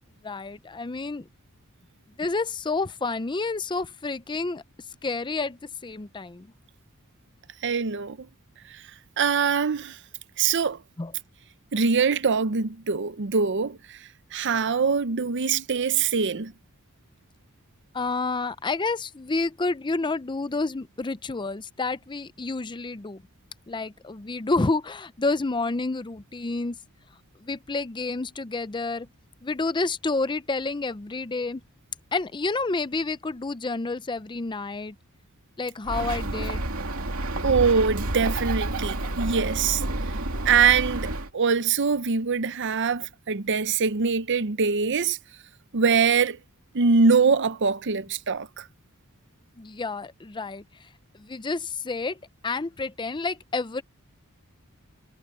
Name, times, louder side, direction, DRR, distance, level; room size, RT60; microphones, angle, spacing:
voice 1, 0.2-1.2 2.2-4.6 5.0-6.5 11.0-11.1 17.9-23.2 23.7-26.8 27.4-29.1 29.4-31.6 32.1-35.0 35.6-36.6 49.6-50.6 51.2-52.2 52.4-53.8, left 3 dB, 20° left, 0.5 m, -29 dB
voice 2, 7.6-8.3 8.7-8.8 9.2-10.0 10.4-10.8 11.7-14.0 14.3-16.5 37.4-39.8 40.4-45.2 45.7-46.4 46.7-48.7, right 5 dB, 55° right, 0.7 m, -23 dB
Bird, 35.8-41.3, right 2 dB, 75° right, 2.7 m, -29 dB
head